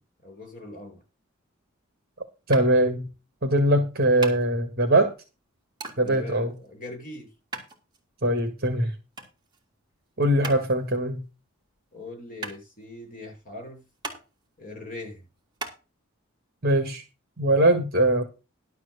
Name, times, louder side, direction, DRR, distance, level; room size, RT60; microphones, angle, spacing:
voice 1, 0.2-1.0 6.0-7.3 10.4-10.6 11.9-13.8 14.6-15.3, left 2 dB, 40° left, 2 dB, 7.2 m, -41 dB
sound 1, 2.5-15.8, right 3 dB, 20° right, 3.3 m, -41 dB
voice 2, 2.5-3.1 3.4-5.1 6.0-6.5 8.2-8.9 10.2-11.2 16.6-17.0 17.4-18.2, right 1 dB, 50° right, 6 dB, 2.0 m, -21 dB
12.0 x 4.6 x 8.2 m, 0.30 s
head